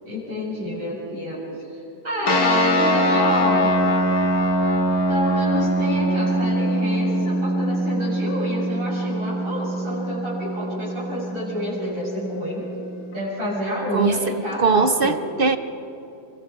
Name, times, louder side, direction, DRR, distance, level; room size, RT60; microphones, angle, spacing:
voice 1, 0.0-1.4 2.0-3.8 5.1-12.7 13.1-15.2, left 1 dB, 30° right, -7 dB, 7.4 m, -28 dB
sound 1, 2.3-13.2, equal, 65° left, 2.1 m, -23 dB
voice 2, 14.6-15.6, right 5 dB, 55° right, 10 dB, 0.6 m, -19 dB
27.0 x 24.0 x 4.9 m, 2.8 s
omnidirectional pair, 1.8 m